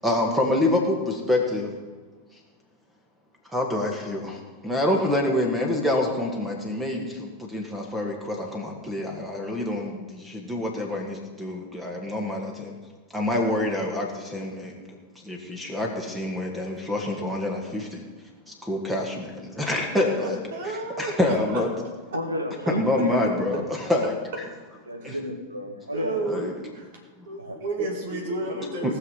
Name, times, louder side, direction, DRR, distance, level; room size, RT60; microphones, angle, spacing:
voice 1, 0.0-1.8 3.5-12.7 13.1-18.0 18.5-20.4 21.0-21.7 22.7-24.1 25.0-25.2 26.2-26.5 28.1-28.2 28.6-29.0, left 1 dB, 5° right, 1 dB, 1.9 m, -27 dB
voice 2, 19.9-21.6 22.1-22.2 22.7-23.1 25.0-25.2 25.9-26.9 27.3-29.0, right 2 dB, 55° right, 2 dB, 2.4 m, -32 dB
voice 3, 22.1-23.1 24.9-26.2 27.4-27.6, equal, 80° right, 4 dB, 1.8 m, -31 dB
19.0 x 6.5 x 5.5 m, 1.4 s
figure-of-eight pair, 90°, 0 cm